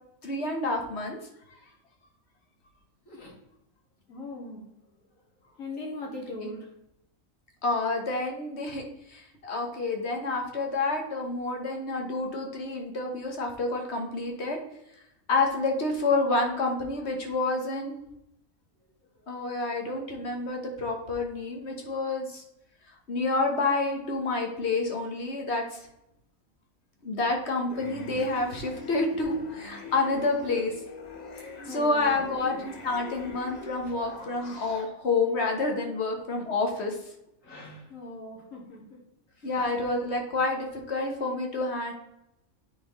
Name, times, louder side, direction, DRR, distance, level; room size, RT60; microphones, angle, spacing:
voice 1, 0.2-1.2 6.4-6.5 7.6-14.6 15.3-18.0 19.3-22.4 23.1-25.8 27.0-30.7 31.4-37.0 39.4-41.9, left 3 dB, 55° left, 2 dB, 1.5 m, -29 dB
voice 2, 3.1-3.4 4.1-4.6 5.6-6.7 31.7-32.2 37.4-39.0, left 2 dB, 75° left, -2 dB, 2.3 m, -40 dB
sound 1, 27.7-34.9, left 4 dB, 35° left, 0.9 m, -42 dB
8.9 x 4.4 x 3.1 m, 0.82 s
omnidirectional pair, 1.4 m